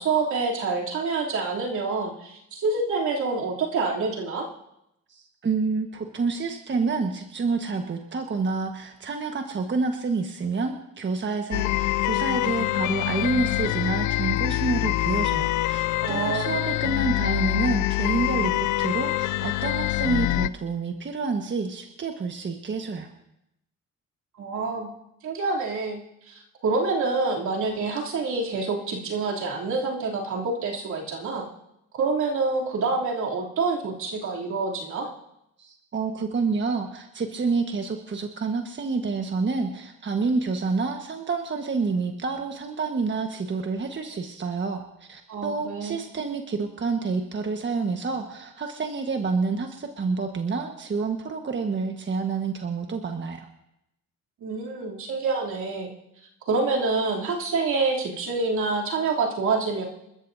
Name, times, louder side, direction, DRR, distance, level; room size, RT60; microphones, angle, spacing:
voice 1, 0.0-4.5 16.0-16.5 24.4-24.9 25.2-26.0 26.3-31.5 31.9-35.1 45.3-46.0 54.4-55.9 56.5-59.8, right 4 dB, 70° right, -3 dB, 3.1 m, -27 dB
voice 2, 5.1-23.1 35.6-53.5, right 4 dB, 40° right, 4 dB, 1.4 m, -28 dB
sound 1, 11.5-20.5, left 17 dB, 80° left, 0.5 m, -25 dB
28.5 x 13.0 x 2.7 m, 0.83 s
cardioid pair, 90°, 30 cm